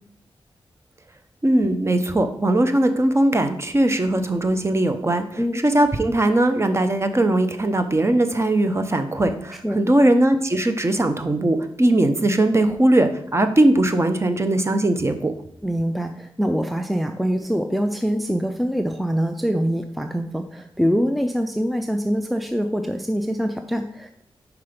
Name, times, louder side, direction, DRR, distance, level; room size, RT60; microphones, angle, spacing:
voice 1, 1.4-15.3, right 1 dB, 25° right, 8 dB, 0.8 m, -20 dB
voice 2, 15.6-24.2, equal, ahead, 6 dB, 0.5 m, -24 dB
5.5 x 4.7 x 5.1 m, 0.68 s
wide cardioid pair, 80°, 10 cm